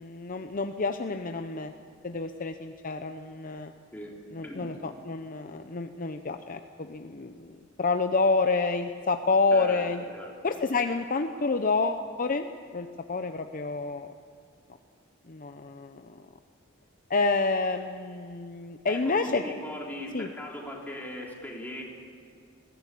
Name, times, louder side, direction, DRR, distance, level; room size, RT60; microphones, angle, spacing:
voice 1, 0.0-1.7 2.0-3.7 4.3-10.0 10.4-12.5 12.7-14.1 15.3-16.3 17.1-19.4 20.1-20.3, left 3 dB, 45° left, 7 dB, 0.7 m, -28 dB
voice 2, 9.5-9.8 10.1-10.3 18.9-21.8, left 1 dB, 10° left, -2 dB, 3.7 m, -39 dB
21.0 x 17.0 x 8.4 m, 2.1 s
head